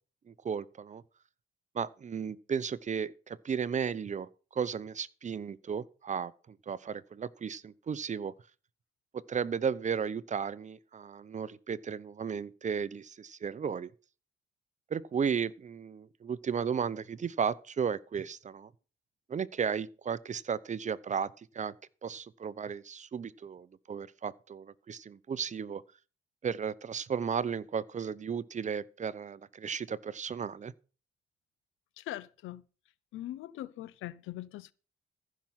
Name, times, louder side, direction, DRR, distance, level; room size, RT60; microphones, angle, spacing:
voice 1, 0.3-1.0 1.7-8.3 9.1-13.9 14.9-18.7 19.3-21.7 22.0-25.8 26.4-30.7, right 6 dB, 35° right, 0.7 m, -34 dB
voice 2, 32.0-32.6 33.1-34.7, left 14 dB, 85° left, 0.7 m, -41 dB
15.0 x 6.0 x 5.8 m
cardioid pair, 90°, 20 cm